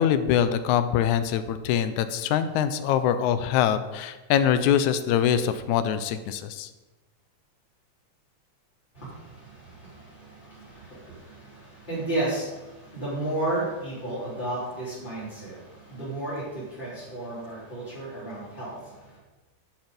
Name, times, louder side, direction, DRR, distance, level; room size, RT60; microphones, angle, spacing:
voice 1, 0.0-6.7, left 9 dB, 80° left, 11 dB, 2.0 m, -24 dB
voice 2, 8.9-19.2, right 2 dB, 15° left, -11 dB, 3.8 m, -33 dB
10.5 x 7.3 x 5.3 m, 1.1 s
omnidirectional pair, 3.6 m